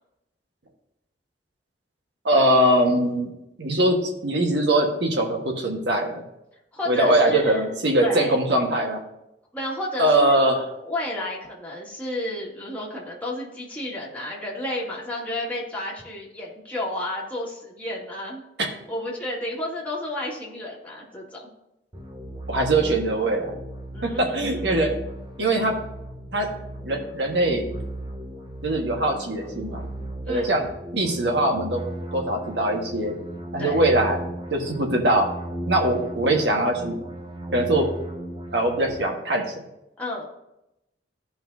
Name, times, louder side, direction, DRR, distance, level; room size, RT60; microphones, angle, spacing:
voice 1, 2.2-3.3 3.6-6.2 6.8-9.0 10.0-10.7 18.6-18.7 22.5-23.6 24.0-24.9 25.4-25.8 26.3-26.5 26.8-27.6 28.6-29.8 30.3-30.7 30.9-31.8 32.1-33.1 33.5-34.2 34.5-35.3 35.7-37.0 37.5-37.9 38.5-39.6, right 1 dB, 75° right, 2 dB, 1.5 m, -22 dB
voice 2, 6.7-7.7 8.0-8.4 9.5-10.4 10.8-18.4 18.9-21.5 23.9-24.9 30.2-30.7 33.6-33.8 40.0-40.2, left 1 dB, 10° left, -5 dB, 2.2 m, -32 dB
sound 1, 21.9-39.0, right 1 dB, 25° right, 1.1 m, -36 dB
14.5 x 5.5 x 2.7 m, 0.87 s
head